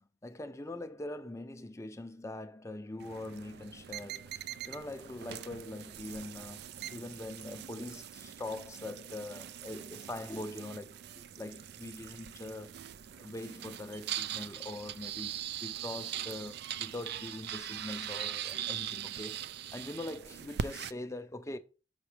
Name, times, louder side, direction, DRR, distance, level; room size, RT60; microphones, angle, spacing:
voice 1, 0.0-4.4 4.7-6.6 6.9-12.8 13.2-21.6, left 1 dB, 15° left, 0.5 m, -43 dB
sound 1, 3.0-20.9, right 10 dB, 55° right, 0.3 m, -41 dB
6.2 x 5.9 x 3.3 m
head